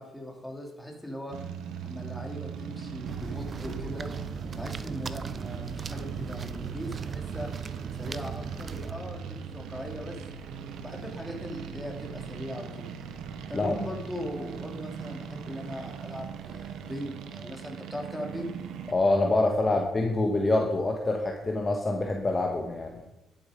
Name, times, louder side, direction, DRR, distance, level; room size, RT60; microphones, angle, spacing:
voice 1, 0.0-1.4 1.8-4.1 4.5-7.5 8.0-10.2 10.8-12.9 13.5-18.5 19.7-19.8, equal, 5° left, 1 dB, 2.6 m, -39 dB
sound 1, 1.3-18.9, right 7 dB, 85° right, 1.0 m, -39 dB
sound 2, 3.1-8.9, right 4 dB, 40° right, 0.6 m, -39 dB
voice 2, 18.9-23.0, left 2 dB, 30° left, 2 dB, 1.3 m, -26 dB
11.0 x 7.1 x 5.0 m, 0.93 s
cardioid pair, 90°, 0 cm